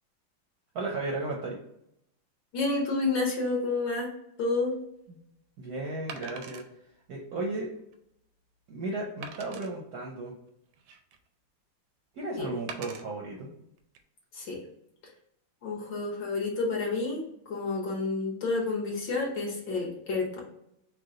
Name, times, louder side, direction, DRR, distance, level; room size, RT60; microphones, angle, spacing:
voice 1, 0.7-1.6 5.1-5.2 5.6-6.6 7.1-7.7 8.7-10.3 12.1-13.5, right 2 dB, 65° right, -1 dB, 0.9 m, -34 dB
voice 2, 2.5-4.1 4.4-4.7 12.4-12.5 14.3-14.6 15.6-20.4, left 3 dB, 60° left, -2 dB, 1.7 m, -30 dB
Wood, 4.5-4.7 6.1-6.7 7.3-7.4 7.9-8.0 9.2-9.7 10.5-11.3 12.7-13.0 13.8-14.0, right 6 dB, 85° right, 1.5 m, -43 dB
4.7 x 2.2 x 3.8 m, 0.78 s
omnidirectional pair, 2.3 m